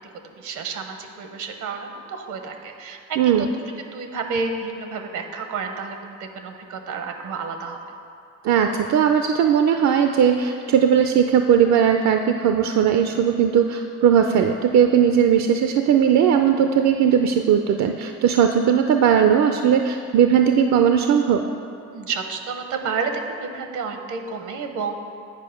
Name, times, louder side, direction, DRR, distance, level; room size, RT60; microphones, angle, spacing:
voice 1, 0.4-3.5 3.8-7.8 21.9-24.9, right 4 dB, 80° right, 5 dB, 0.9 m, -30 dB
voice 2, 3.2-3.5 8.4-21.4, right 8 dB, 65° right, 6 dB, 0.5 m, -18 dB
9.1 x 4.8 x 5.8 m, 2.5 s
cardioid pair, 90°, 30 cm